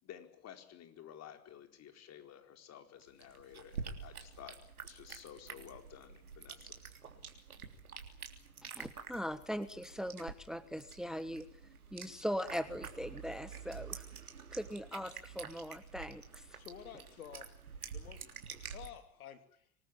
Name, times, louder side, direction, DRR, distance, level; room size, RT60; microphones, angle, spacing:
voice 1, 0.0-4.6 4.8-6.8, left 10 dB, 35° left, 6 dB, 4.6 m, -53 dB
sound 1, 3.0-18.9, right 6 dB, 90° right, 3.4 m, -48 dB
voice 2, 8.7-11.5 11.9-14.0 14.5-16.6, equal, ahead, 14 dB, 1.2 m, -40 dB
voice 3, 16.5-17.5 17.9-18.2 18.7-19.7, left 9 dB, 75° left, 9 dB, 3.0 m, -51 dB
26.0 x 20.0 x 8.9 m, 0.63 s
hypercardioid pair, 95°, 42 cm